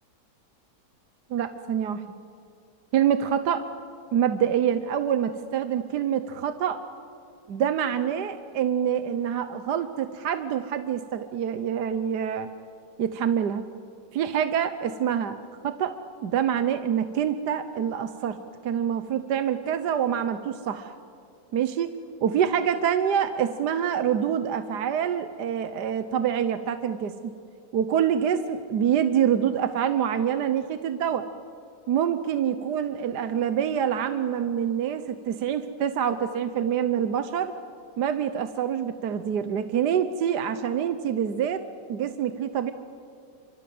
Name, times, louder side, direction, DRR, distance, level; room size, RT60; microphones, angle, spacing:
voice 1, 1.3-2.0 2.9-3.6 4.1-6.8 7.5-12.5 13.0-13.6 14.1-15.4 15.6-16.0 16.2-18.4 18.6-20.9 21.5-21.9 22.2-27.1 27.7-31.3 31.9-37.5 38.0-41.6 41.9-42.7, right 9 dB, 70° right, 10 dB, 1.4 m, -26 dB
29.5 x 26.0 x 7.8 m, 2.4 s
omnidirectional pair, 1.9 m